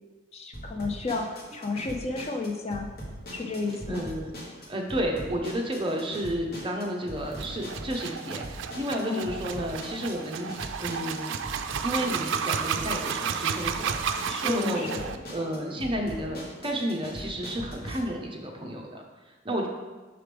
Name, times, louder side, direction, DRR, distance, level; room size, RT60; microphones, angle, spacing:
voice 1, 0.3-2.9 3.3-4.1 9.0-9.3 14.3-15.1, left 3 dB, 35° left, 3 dB, 0.4 m, -32 dB
sound 1, 0.5-18.0, equal, 50° left, 1.2 m, -41 dB
voice 2, 3.9-4.3 4.7-10.5 10.8-11.4 11.8-14.9 15.3-19.7, equal, 25° right, 1 dB, 0.7 m, -31 dB
sound 2, 7.3-15.2, right 7 dB, 80° right, 0.3 m, -32 dB
5.9 x 4.8 x 3.4 m, 1.3 s
head